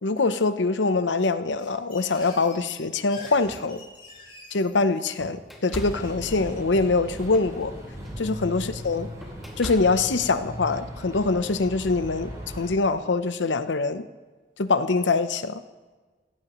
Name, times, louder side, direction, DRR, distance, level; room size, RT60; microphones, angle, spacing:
voice 1, 0.0-3.8 4.5-7.7 8.2-9.1 9.6-14.1 14.6-15.6, left 3 dB, 80° left, 11 dB, 0.7 m, -24 dB
sound 1, 1.6-4.9, left 3 dB, 30° left, 5.3 m, -46 dB
sound 2, 2.9-4.3 4.8-10.3, equal, ahead, 2.2 m, -42 dB
sound 3, 5.8-12.7, equal, 20° right, 4.1 m, -38 dB
17.5 x 15.0 x 3.1 m, 1.3 s
head